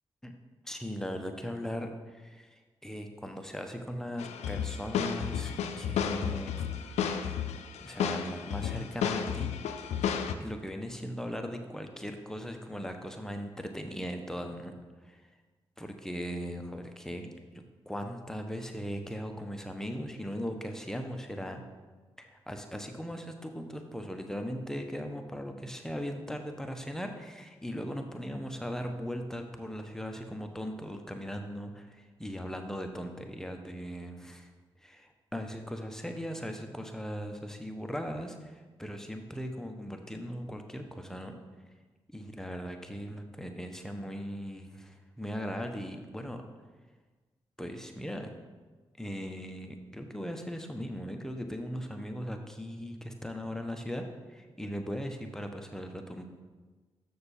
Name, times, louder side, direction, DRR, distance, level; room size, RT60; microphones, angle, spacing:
voice 1, 0.6-6.7 7.0-9.6 9.8-10.0 10.4-14.8 15.0-15.2 15.8-21.6 22.2-34.5 34.8-41.4 42.1-46.4 47.6-48.3 49.0-56.3, equal, 5° left, 4 dB, 1.1 m, -39 dB
sound 1, 4.2-10.3, left 8 dB, 90° left, 0.4 m, -32 dB
6.7 x 6.6 x 4.3 m, 1.3 s
supercardioid pair, 40°, 11 cm